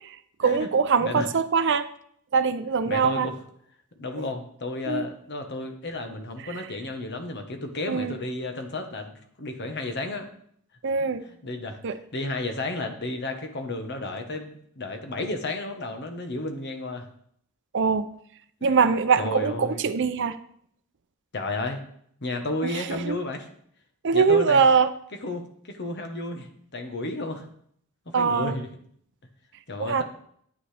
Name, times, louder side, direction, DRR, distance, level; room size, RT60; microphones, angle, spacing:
voice 1, 0.0-1.9 2.3-3.3 4.9-5.1 7.9-8.2 10.8-11.2 11.8-12.0 17.7-18.1 18.6-20.4 22.6-23.2 24.0-24.9 28.1-28.6 29.8-30.0, right 5 dB, 60° right, 12 dB, 0.6 m, -23 dB
voice 2, 2.9-3.3 4.0-10.3 11.2-11.8 12.1-17.1 18.6-18.9 19.2-19.8 21.3-21.8 22.2-23.4 24.1-24.6 25.2-27.5 28.2-28.7 29.7-30.0, left 2 dB, 55° left, 5 dB, 1.3 m, -32 dB
9.8 x 8.6 x 3.4 m, 0.65 s
head